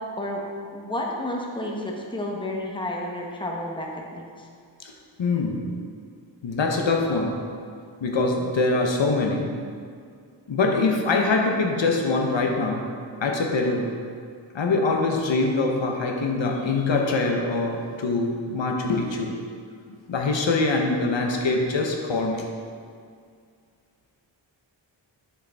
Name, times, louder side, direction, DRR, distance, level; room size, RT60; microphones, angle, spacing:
voice 1, 0.7-4.5, left 1 dB, 10° left, -1 dB, 0.9 m, -31 dB
voice 2, 5.2-5.6 6.4-7.4 8.0-9.5 10.5-12.9 13.2-13.9 14.5-19.4 20.1-22.5, left 3 dB, 70° left, 1 dB, 0.9 m, -24 dB
7.7 x 6.6 x 3.4 m, 2.2 s
wide cardioid pair, 90°, 46 cm